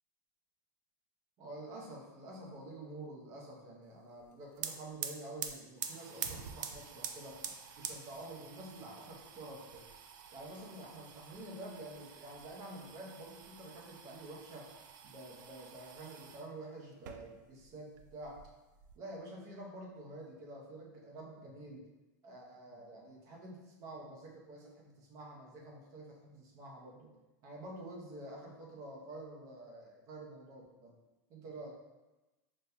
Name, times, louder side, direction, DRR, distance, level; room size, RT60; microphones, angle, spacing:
voice 1, 1.4-7.4 7.8-9.8 10.3-14.7 15.0-18.4 18.9-21.8 22.2-27.1 27.4-30.9 31.3-31.8, right 1 dB, 30° right, -2 dB, 0.8 m, -48 dB
sound 1, 4.2-4.3 4.5-16.5 16.9-17.7 18.0-19.0, right 8 dB, 80° right, 0.4 m, -46 dB
5.2 x 2.7 x 2.2 m, 1.1 s
supercardioid pair, 165°, 10 cm